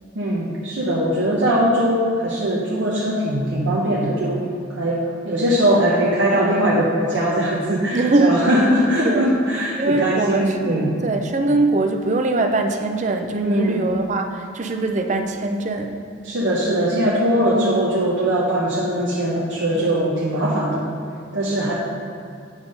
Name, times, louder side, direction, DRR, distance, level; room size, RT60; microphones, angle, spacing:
voice 1, 0.1-10.9 13.4-13.9 16.2-20.8 21.3-21.7, right 1 dB, 70° right, -4 dB, 0.9 m, -20 dB
voice 2, 7.9-8.4 9.0-9.3 9.8-16.0 19.7-20.0, right 2 dB, 40° right, 5 dB, 0.5 m, -22 dB
8.1 x 3.6 x 5.3 m, 2.5 s
head